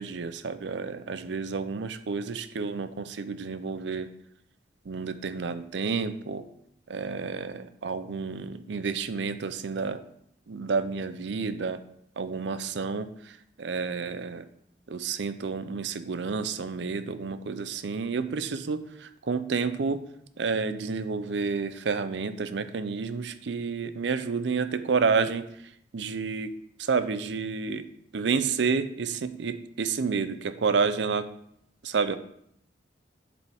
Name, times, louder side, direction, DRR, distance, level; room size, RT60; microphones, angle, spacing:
voice 1, 0.0-4.1 4.9-6.4 6.9-10.0 10.5-11.8 12.2-14.5 14.9-20.0 20.4-25.4 25.9-26.5 26.8-27.9 28.1-31.3 31.8-32.2, right 5 dB, 75° right, 11 dB, 0.5 m, -30 dB
7.8 x 5.1 x 3.5 m, 0.71 s
head